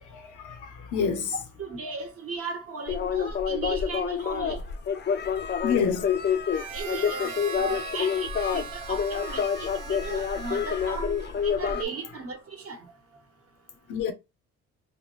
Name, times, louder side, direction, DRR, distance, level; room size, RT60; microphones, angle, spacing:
voice 1, 0.1-1.3 5.6-6.1 13.9-14.1, left 6 dB, 80° left, 0.9 m, -28 dB
voice 2, 1.6-4.6 6.7-12.8, right 4 dB, 50° right, 1.1 m, -37 dB
sound 1, 2.9-11.8, left 7 dB, 35° left, 0.5 m, -28 dB
Harmonica, 6.5-11.5, right 6 dB, 90° right, 0.7 m, -40 dB
3.6 x 2.2 x 3.1 m
cardioid pair, 90°, 30 cm